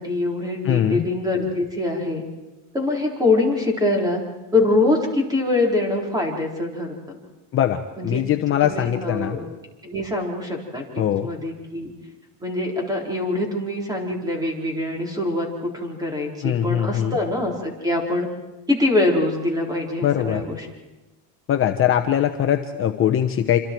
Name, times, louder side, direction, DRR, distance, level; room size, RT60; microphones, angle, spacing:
voice 1, 0.0-2.2 2.7-4.2 4.5-7.2 8.0-8.2 8.6-9.5 9.8-11.9 12.4-18.3 18.7-20.7, left 2 dB, 10° right, 0 dB, 4.3 m, -24 dB
voice 2, 0.6-1.1 7.5-9.4 11.0-11.3 16.4-17.2 20.0-20.4 21.5-23.6, left 10 dB, 35° left, 6 dB, 1.0 m, -21 dB
27.0 x 26.5 x 4.7 m, 1.1 s
cardioid pair, 155°, 36 cm